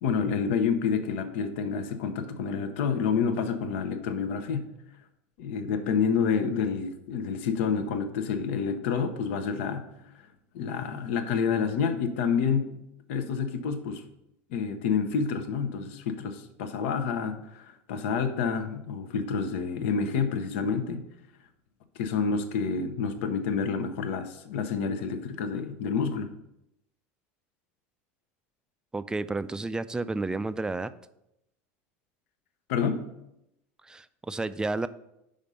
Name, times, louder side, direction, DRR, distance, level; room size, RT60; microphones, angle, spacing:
voice 1, 0.0-4.7 5.4-9.9 10.5-12.8 13.1-14.0 14.5-21.0 22.0-26.3 32.7-33.0, left 6 dB, 75° left, 8 dB, 0.8 m, -28 dB
voice 2, 28.9-30.9 33.9-34.9, right 3 dB, 10° right, 13 dB, 0.3 m, -31 dB
5.2 x 5.0 x 5.4 m, 0.84 s
supercardioid pair, 100°, 7 cm